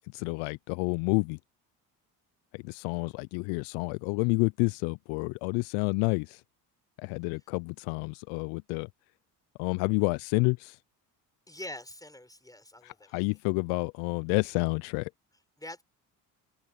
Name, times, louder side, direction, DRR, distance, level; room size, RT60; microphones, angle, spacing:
voice 1, 0.1-1.4 2.5-6.4 7.0-8.9 9.6-10.8 12.8-15.1, left 32 dB, 70° left, 0.6 m, -29 dB
voice 2, 11.5-13.2 15.6-15.8, left 1 dB, 5° left, 6.2 m, -44 dB
hypercardioid pair, 60°, 50 cm